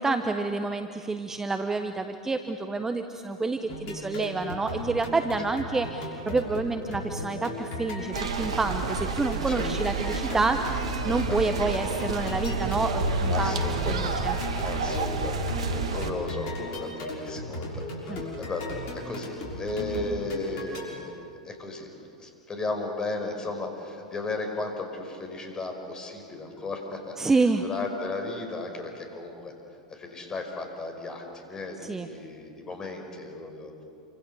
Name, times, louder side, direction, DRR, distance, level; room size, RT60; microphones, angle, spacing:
voice 1, 0.0-10.6 11.0-13.6 13.9-14.4 18.1-18.2 27.2-27.6 31.8-32.1, right 3 dB, 15° right, 7 dB, 1.1 m, -28 dB
sound 1, 3.7-20.8, left 1 dB, 50° left, 6.2 m, -36 dB
sound 2, 8.1-16.1, right 3 dB, 70° right, 2.1 m, -29 dB
voice 2, 11.3-11.6 13.3-21.9 22.2-29.6 29.9-33.8, left 2 dB, 20° left, 3 dB, 5.5 m, -35 dB
28.5 x 25.5 x 7.0 m, 2.6 s
figure-of-eight pair, 90°, 3 cm